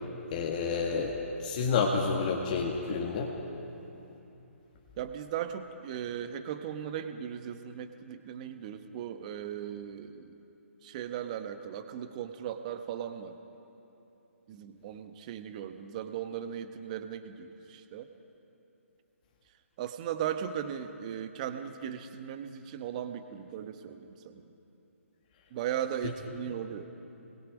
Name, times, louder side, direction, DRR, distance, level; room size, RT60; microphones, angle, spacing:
voice 1, 0.3-3.3, left 5 dB, 35° left, -1 dB, 1.8 m, -29 dB
voice 2, 5.0-10.4 10.8-13.4 14.5-18.1 19.8-24.5 25.5-26.8, right 9 dB, 30° right, 8 dB, 1.1 m, -37 dB
28.0 x 21.0 x 5.2 m, 2.9 s
figure-of-eight pair, 135°, 8 cm